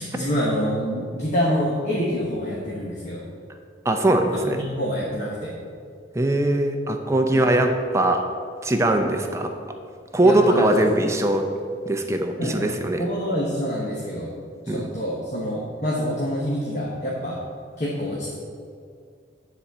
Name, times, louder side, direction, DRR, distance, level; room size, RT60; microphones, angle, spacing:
voice 1, 0.0-3.2 4.5-5.5 7.3-7.6 10.2-11.0 12.4-12.7 13.0-14.3 14.6-17.4 17.8-18.3, equal, 35° left, -5 dB, 1.2 m, -26 dB
voice 2, 3.8-4.6 6.1-8.2 8.6-9.5 10.1-11.5 11.9-13.1 14.7-14.9, right 1 dB, 15° right, 4 dB, 0.6 m, -21 dB
10.0 x 4.3 x 6.7 m, 2.3 s
head